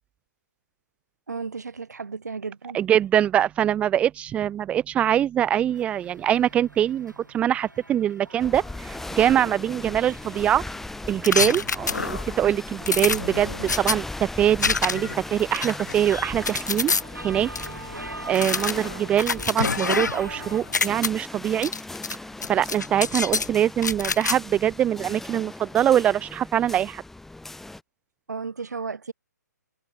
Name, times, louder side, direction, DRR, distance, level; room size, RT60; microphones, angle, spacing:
voice 1, 1.3-2.8 28.3-29.1, right 5 dB, 65° right, 1.7 m, -34 dB
voice 2, 2.7-10.6 11.1-16.9 17.2-17.5 18.3-21.7 22.5-27.0, right 10 dB, 10° right, 0.7 m, -23 dB
sound 1, 5.7-20.6, right 1 dB, 85° right, 5.6 m, -44 dB
sound 2, 8.4-27.8, left 2 dB, 5° left, 1.8 m, -38 dB
sound 3, 11.2-12.3 12.9-14.0 14.6-15.2 15.5-17.0 17.6-17.7 18.3-20.3 20.6-21.1 21.6-22.2 22.4-23.5 23.8-24.4, left 5 dB, 70° left, 0.7 m, -26 dB
figure-of-eight pair, 130°, 10 cm